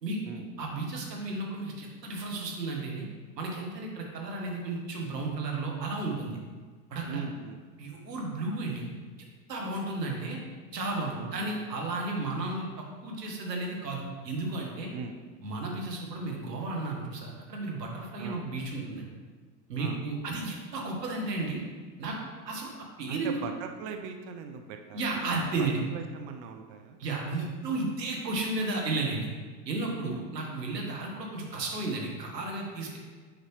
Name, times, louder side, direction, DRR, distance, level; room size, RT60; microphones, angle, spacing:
voice 1, 0.0-3.1 3.4-6.4 6.9-7.2 7.8-8.9 9.5-10.4 10.7-14.9 15.4-19.0 19.7-21.6 22.0-22.2 22.4-23.4 24.9-25.8 27.0-29.3 29.6-33.0, right 2 dB, 75° right, -1 dB, 1.5 m, -33 dB
voice 2, 7.1-7.6 11.2-11.5 14.9-15.2 18.2-18.4 19.8-20.0 23.1-27.0 30.0-30.3, right 6 dB, 25° right, 5 dB, 0.3 m, -40 dB
8.1 x 5.0 x 3.1 m, 1.4 s
figure-of-eight pair, 85°, 49 cm